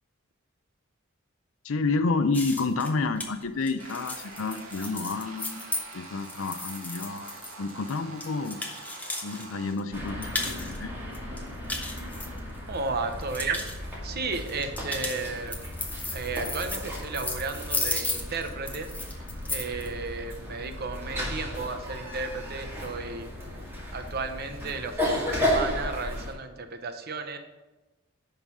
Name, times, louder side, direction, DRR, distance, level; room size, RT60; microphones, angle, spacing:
voice 1, 1.6-8.6 9.2-10.9, left 3 dB, 65° left, 11 dB, 0.6 m, -30 dB
sound 1, 2.3-9.5 9.8-10.8 11.1-12.8 13.1-13.8 14.5-19.9, left 2 dB, 10° left, 0.9 m, -35 dB
sound 2, 3.8-9.7, right 3 dB, 80° right, 1.7 m, -45 dB
sound 3, 9.9-26.3, equal, 10° right, 2.1 m, -34 dB
voice 2, 12.7-15.6 16.1-18.9 19.5-23.3 23.9-27.4, right 4 dB, 50° right, 7 dB, 0.8 m, -34 dB
11.0 x 3.9 x 5.4 m, 1.1 s
head